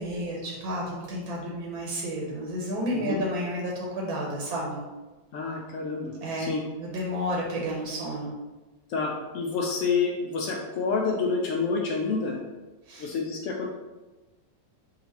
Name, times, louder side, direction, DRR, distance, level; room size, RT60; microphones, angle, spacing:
voice 1, 0.0-4.8 6.2-6.5 6.8-8.3 12.9-13.1, equal, 65° right, -2 dB, 1.1 m, -31 dB
voice 2, 5.3-6.6 8.9-12.4 13.0-13.7, left 4 dB, 90° left, -1 dB, 0.6 m, -28 dB
3.9 x 2.5 x 4.1 m, 1.2 s
omnidirectional pair, 1.9 m